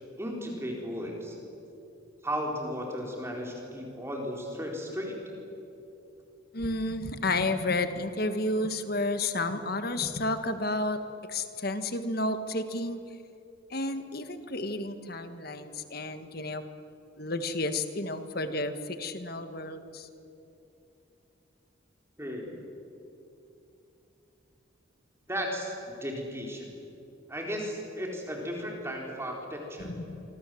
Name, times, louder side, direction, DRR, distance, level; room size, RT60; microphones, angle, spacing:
voice 1, 0.2-1.4 2.2-5.2 22.2-22.5 25.3-26.7 27.3-29.9, equal, 15° right, 0 dB, 4.3 m, -35 dB
voice 2, 6.5-11.0 11.3-13.0 13.7-16.6 17.2-20.1 29.8-30.2, left 2 dB, 50° left, 9 dB, 1.5 m, -31 dB
26.0 x 25.5 x 7.8 m, 2.9 s
head